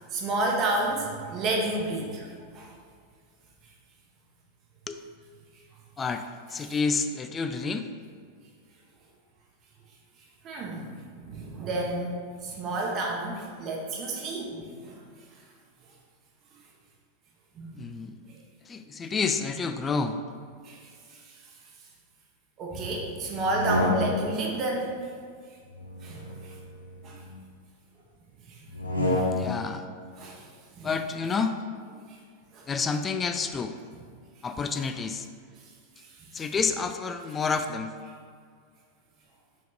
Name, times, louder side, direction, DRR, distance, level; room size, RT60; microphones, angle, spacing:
voice 1, 0.1-2.3 2.5-2.7 6.6-6.8 10.4-10.9 11.2-15.0 17.6-17.8 20.6-20.8 21.1-21.3 22.6-25.0 26.0-26.6 27.0-27.2 28.5-28.7 30.2-30.5 30.8-31.0 32.1-32.2 32.5-32.7 36.2-36.3, right 2 dB, 35° right, -1 dB, 1.0 m, -31 dB
voice 2, 6.5-7.9 17.8-18.3 18.7-20.2 28.8-29.9 30.8-31.6 32.7-33.7 34.4-35.3 36.3-37.9, left 4 dB, 20° left, 8 dB, 0.3 m, -29 dB
sound 1, 23.4-24.5 25.7-27.4 28.7-29.7, left 1 dB, 85° left, 0.7 m, -29 dB
5.2 x 5.1 x 3.9 m, 2.1 s
figure-of-eight pair, 90°, 0 cm